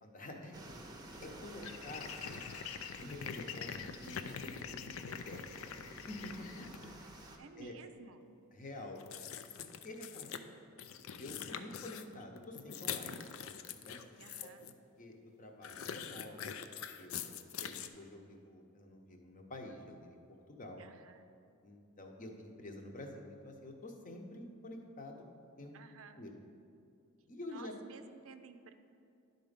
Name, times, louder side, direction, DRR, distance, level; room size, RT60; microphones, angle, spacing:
voice 1, 0.0-0.6 1.2-2.1 3.0-5.6 6.1-7.3 7.6-7.7 8.5-9.0 9.8-10.5 11.2-13.2 13.9-14.5 15.0-16.4 17.0-20.2 20.5-20.8 21.6-25.2 25.6-25.7 26.2-26.3 27.3-27.7, left 1 dB, 40° left, 3 dB, 0.9 m, -48 dB
sound 1, 0.5-7.4, right 2 dB, 20° right, 0.7 m, -53 dB
sound 2, 1.1-1.2 1.6-6.8 9.0-10.4 10.8-14.7 15.6-17.9, left 8 dB, 80° left, 0.4 m, -44 dB
voice 2, 7.4-8.2 10.2-10.5 11.5-11.7 14.2-14.7 20.8-21.3 25.7-26.3 27.5-28.7, right 5 dB, 75° right, 9 dB, 0.5 m, -55 dB
11.0 x 4.0 x 5.1 m, 2.4 s
head